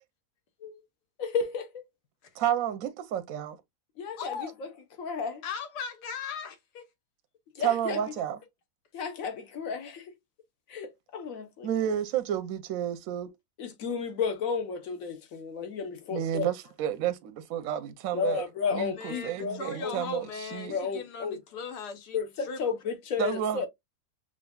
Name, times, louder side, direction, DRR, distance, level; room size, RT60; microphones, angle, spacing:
voice 1, 1.2-1.8 4.0-4.7 5.0-5.4 7.5-8.1 8.9-10.1 10.7-11.7 13.6-16.5 18.1-19.9 20.7-21.4 22.1-23.7, left 5 dB, 60° left, 1.2 m, -33 dB
voice 2, 2.4-3.6 7.6-8.4 11.6-13.3 16.1-18.4 18.7-20.3 20.5-20.8 23.2-23.7, right 10 dB, 70° right, 0.9 m, -30 dB
voice 3, 4.2-4.5 5.4-6.9 18.9-22.6, left 5 dB, 85° left, 1.5 m, -38 dB
6.1 x 2.5 x 2.2 m
omnidirectional pair, 1.7 m